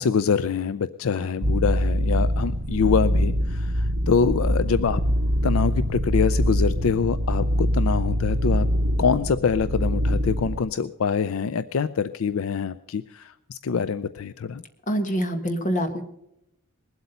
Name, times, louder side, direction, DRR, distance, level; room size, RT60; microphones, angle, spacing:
voice 1, 0.0-5.0 5.4-8.7 9.0-14.6, left 6 dB, 70° left, 13 dB, 0.4 m, -25 dB
sound 1, 1.4-10.6, equal, 60° right, 1.1 m, -24 dB
voice 2, 14.9-16.0, equal, 35° left, 7 dB, 1.5 m, -25 dB
20.5 x 8.0 x 5.5 m, 0.81 s
head